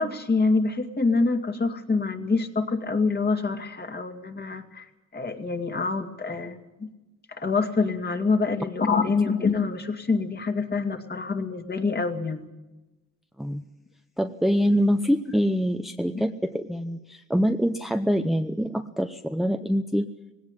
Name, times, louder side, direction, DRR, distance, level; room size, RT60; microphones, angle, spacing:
voice 1, 0.0-4.9 5.1-6.6 7.4-12.5 16.1-16.2, left 4 dB, 35° left, 5 dB, 2.4 m, -26 dB
voice 2, 14.2-20.1, equal, ahead, 8 dB, 0.9 m, -25 dB
18.5 x 17.5 x 9.8 m, 1.0 s
cardioid pair, 90°, 30 cm